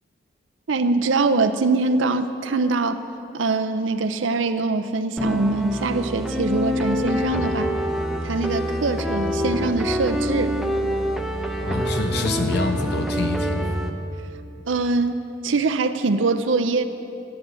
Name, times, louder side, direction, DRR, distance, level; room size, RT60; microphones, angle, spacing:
voice 1, 0.7-3.0 3.3-7.7 8.2-10.6 14.7-16.8, right 3 dB, 75° right, 8 dB, 0.6 m, -23 dB
sound 1, 5.2-13.9, equal, ahead, 0.7 m, -25 dB
voice 2, 11.6-13.7, left 2 dB, 55° left, 5 dB, 0.8 m, -26 dB
14.0 x 10.0 x 7.7 m, 2.8 s
head